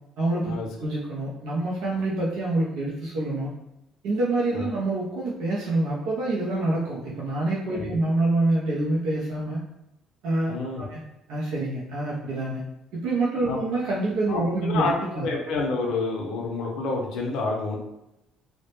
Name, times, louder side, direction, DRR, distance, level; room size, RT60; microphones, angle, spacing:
voice 1, 0.2-0.5 0.8-3.5 4.0-9.6 10.2-11.0 11.3-12.6 12.9-15.3, right 2 dB, 85° right, -6 dB, 0.5 m, -26 dB
voice 2, 10.5-10.9 13.5-13.6 14.3-17.8, left 3 dB, 75° left, 0 dB, 0.5 m, -28 dB
2.0 x 2.0 x 2.9 m, 0.88 s
cardioid pair, 115°, 0 cm